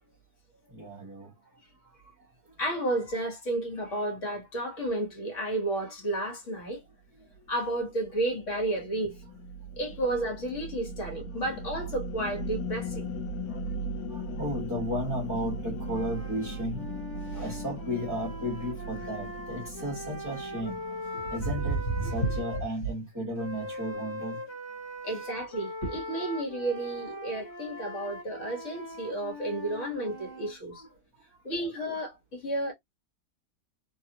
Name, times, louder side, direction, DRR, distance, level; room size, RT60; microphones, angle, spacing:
voice 1, 0.7-1.3 13.5-13.6 14.1-16.9 17.3-20.8 21.3-24.4 25.2-25.3 30.7-30.9, equal, 15° right, 0.9 m, -34 dB
voice 2, 2.6-6.8 7.5-9.2 9.8-13.1 17.3-17.4 21.4-22.3 25.0-30.8 31.4-32.7, right 1 dB, 55° left, 1.7 m, -32 dB
sound 1, 7.5-22.0, right 1 dB, 80° left, 1.1 m, -38 dB
sound 2, 15.7-22.6 23.4-30.5, left 1 dB, 20° left, 1.2 m, -41 dB
3.3 x 2.4 x 2.8 m
omnidirectional pair, 1.6 m